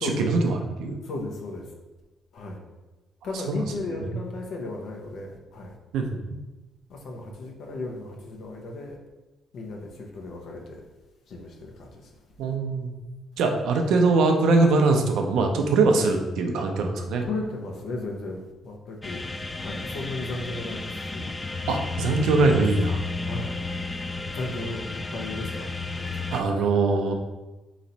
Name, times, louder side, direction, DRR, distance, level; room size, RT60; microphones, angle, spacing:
voice 1, 0.0-1.0 3.3-4.2 5.9-6.1 12.4-12.9 13.4-17.2 21.7-23.0 26.3-27.1, right 3 dB, 85° right, 4 dB, 0.6 m, -22 dB
voice 2, 1.1-1.6 2.3-2.6 3.2-5.7 6.9-9.0 9.5-10.8 11.3-11.9 17.3-18.4 18.6-19.2 19.6-21.3 23.2-23.6 24.3-24.8 25.1-25.7, left 2 dB, 70° left, 0 dB, 1.0 m, -35 dB
sound 1, 19.0-26.4, left 3 dB, 20° left, 0.3 m, -32 dB
4.2 x 3.1 x 4.0 m, 1.1 s
cardioid pair, 90°, 0 cm